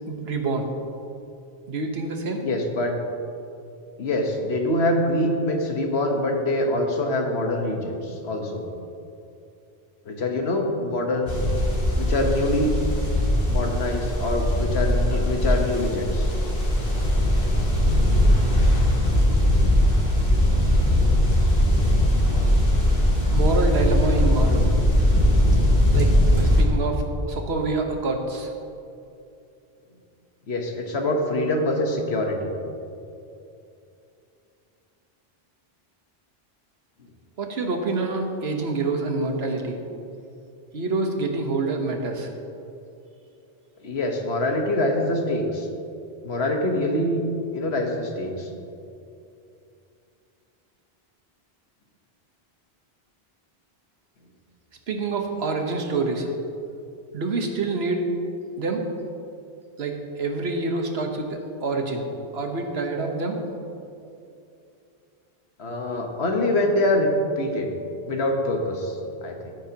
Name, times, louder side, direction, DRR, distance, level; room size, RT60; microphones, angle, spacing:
voice 1, 0.1-0.7 1.7-2.4 23.3-24.7 25.9-28.5 37.4-39.8 40.7-42.3 54.9-56.3 57.1-58.1 58.6-58.9 59.8-62.1 62.3-63.4, right 3 dB, 80° right, 3 dB, 1.4 m, -27 dB
voice 2, 2.4-3.0 4.0-8.6 10.0-11.4 12.0-12.7 13.5-16.3 26.3-26.4 30.5-32.5 43.8-45.7 46.2-47.2 47.5-48.5 65.6-67.1 67.4-67.7 68.1-69.5, left 1 dB, 85° left, 2 dB, 1.5 m, -25 dB
sound 1, 11.3-26.6, left 1 dB, 60° left, 2.2 m, -20 dB
16.5 x 9.0 x 2.9 m, 2.6 s
omnidirectional pair, 1.1 m